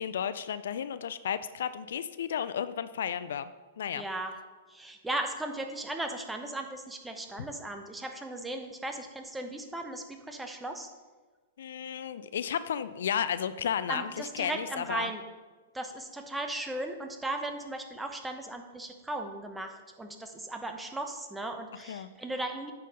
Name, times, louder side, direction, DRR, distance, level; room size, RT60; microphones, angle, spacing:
voice 1, 0.0-3.5 3.8-4.0 11.6-15.1 21.9-22.1, left 8 dB, 70° left, 14 dB, 0.4 m, -33 dB
voice 2, 3.9-4.4 4.7-10.9 13.9-15.2 15.7-22.7, right 2 dB, 10° right, 5 dB, 1.0 m, -37 dB
8.7 x 5.4 x 5.3 m, 1.3 s
hypercardioid pair, 110°, 0 cm